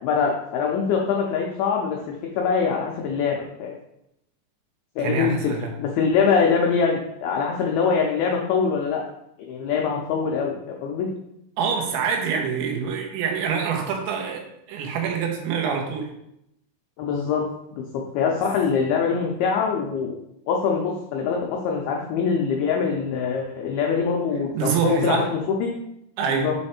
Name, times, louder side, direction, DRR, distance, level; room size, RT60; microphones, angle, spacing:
voice 1, 0.0-2.0 2.3-3.7 5.0-5.4 5.8-9.0 9.5-11.1 17.0-17.4 17.7-17.8 18.1-20.1 20.5-25.7 26.3-26.6, left 6 dB, 90° left, 0 dB, 2.1 m, -23 dB
voice 2, 5.0-5.7 11.6-14.4 14.7-16.1 24.5-25.3 26.2-26.5, right 6 dB, 85° right, 1 dB, 3.3 m, -25 dB
7.1 x 3.3 x 4.3 m, 0.80 s
omnidirectional pair, 5.3 m